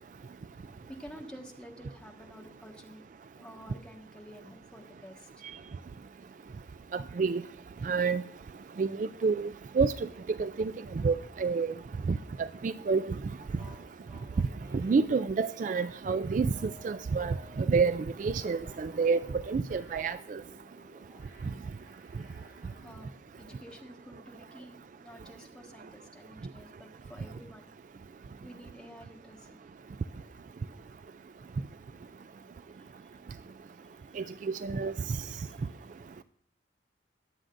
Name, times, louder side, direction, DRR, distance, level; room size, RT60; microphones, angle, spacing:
voice 1, 0.9-3.0 3.3-5.3 22.8-27.7 28.4-29.6 36.0-36.1, equal, 5° left, 0 dB, 1.5 m, -50 dB
voice 2, 6.9-7.4 7.8-8.2 8.8-9.5 9.8-9.9 10.4-10.7 11.0-11.7 12.1-13.1 14.8-19.2 19.5-20.4 34.2-34.3 34.6-34.9, right 5 dB, 45° right, 13 dB, 0.3 m, -28 dB
sound 1, 13.4-17.7 18.2-23.0, left 1 dB, 25° right, 3.5 m, -58 dB
21.0 x 7.7 x 2.6 m, 0.65 s
head